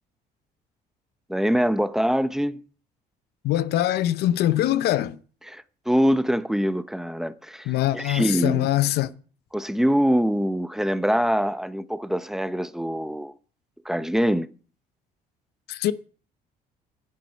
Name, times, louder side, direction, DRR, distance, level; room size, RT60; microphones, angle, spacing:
voice 1, 1.3-2.6 5.5-7.7 7.9-8.7 9.5-13.3 13.8-14.5, equal, ahead, 0.7 m, -24 dB
voice 2, 3.4-5.2 7.6-9.1 15.7-15.9, left 13 dB, 75° left, 0.7 m, -23 dB
10.5 x 7.7 x 7.8 m
cardioid pair, 110°, 17 cm